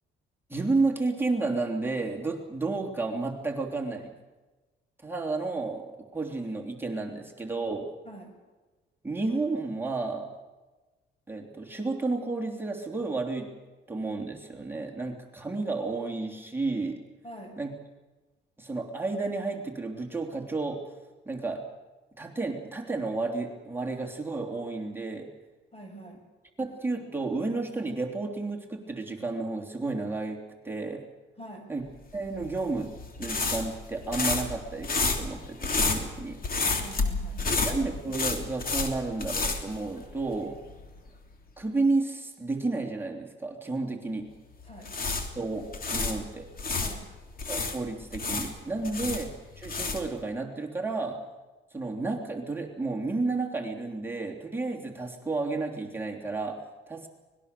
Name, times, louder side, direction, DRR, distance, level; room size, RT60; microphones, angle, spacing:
voice 1, 0.5-4.1 5.0-7.9 9.0-10.3 11.3-13.5 13.9-17.0 17.6-17.7 18.6-20.9 21.2-21.7 22.2-25.3 26.6-31.1 31.7-31.8 32.1-32.9 33.2-36.4 37.5-40.6 41.6-44.3 45.3-46.5 47.5-49.3 49.6-51.2 51.7-57.1, right 3 dB, 10° right, -1 dB, 3.2 m, -31 dB
voice 2, 17.2-17.6 25.7-26.2 31.4-31.7 36.8-37.7 44.7-44.9 46.8-47.1 48.8-49.1, right 1 dB, 30° left, 4 dB, 7.0 m, -45 dB
sound 1, 32.3-40.4 40.7-40.9 44.6-46.9 47.4-50.2, left 3 dB, 45° left, 3.3 m, -30 dB
25.0 x 20.0 x 6.9 m, 1.2 s
cardioid pair, 90°, 20 cm